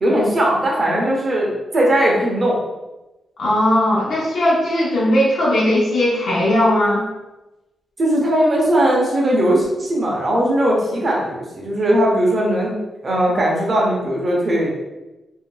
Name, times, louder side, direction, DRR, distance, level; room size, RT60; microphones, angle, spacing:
voice 1, 0.0-2.6 8.0-12.8 13.0-14.8, right 1 dB, 35° right, -3 dB, 0.8 m, -18 dB
voice 2, 3.4-7.0, left 1 dB, 65° left, -7 dB, 0.8 m, -18 dB
3.6 x 2.6 x 2.2 m, 1.0 s
wide cardioid pair, 145°, 0 cm